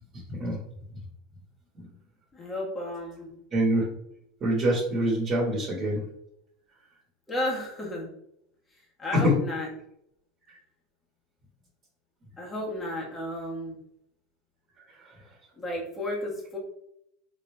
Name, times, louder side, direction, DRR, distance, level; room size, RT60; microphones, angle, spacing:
voice 1, 2.3-3.3 7.3-8.1 9.0-9.7 12.4-13.8 15.6-16.6, left 1 dB, 20° left, -2 dB, 1.2 m, -32 dB
voice 2, 3.5-3.8 4.4-6.0 9.1-9.3, equal, 35° right, -4 dB, 1.3 m, -24 dB
3.9 x 3.2 x 2.2 m, 0.74 s
supercardioid pair, 110°, 0 cm